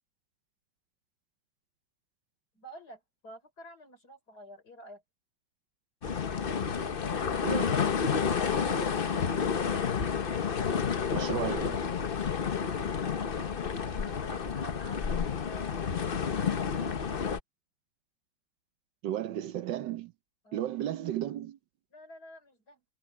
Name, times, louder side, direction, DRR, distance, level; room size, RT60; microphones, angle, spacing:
voice 1, 2.5-5.0 12.7-15.9 16.3-17.1 20.4-20.7 21.9-22.8, right 1 dB, 55° left, 5.2 m, -51 dB
sound 1, 6.0-17.4, left 6 dB, 40° left, 0.9 m, -30 dB
voice 2, 7.4-8.0 11.1-11.8 19.0-20.1 20.5-21.6, right 12 dB, 75° right, 1.4 m, -34 dB
omnidirectional pair, 2.0 m